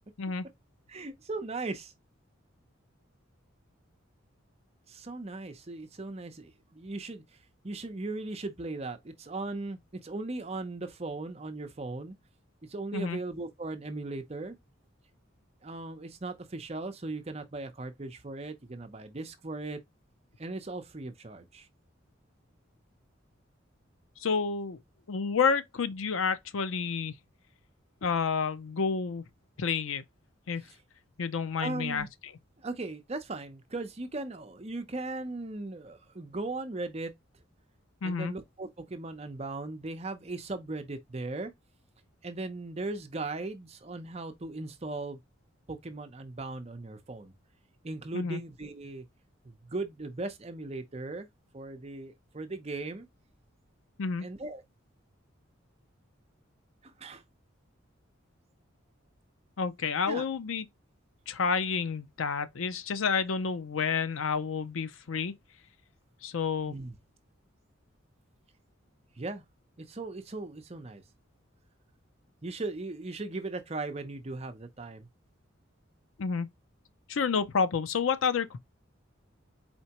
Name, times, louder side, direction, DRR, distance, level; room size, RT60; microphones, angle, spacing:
voice 1, 0.9-1.9 4.9-7.2 7.6-12.1 12.7-14.6 15.6-19.8 20.4-21.7 31.6-32.1 32.6-37.1 38.0-41.5 42.2-45.2 45.7-47.3 47.8-49.0 49.4-51.3 51.5-53.1 54.2-54.6 56.8-57.2 60.1-60.2 66.7-66.9 69.2-69.4 69.8-71.0 72.4-75.1, right 2 dB, 30° right, 0.7 m, -38 dB
voice 2, 24.2-24.8 25.1-27.1 28.0-29.2 29.6-30.0 30.5-30.6 31.2-32.3 38.0-38.3 48.1-48.4 54.0-54.3 59.6-60.7 61.3-65.3 66.2-66.8 76.2-76.5 77.1-78.6, left 5 dB, 80° left, 0.6 m, -29 dB
4.3 x 3.3 x 2.9 m
head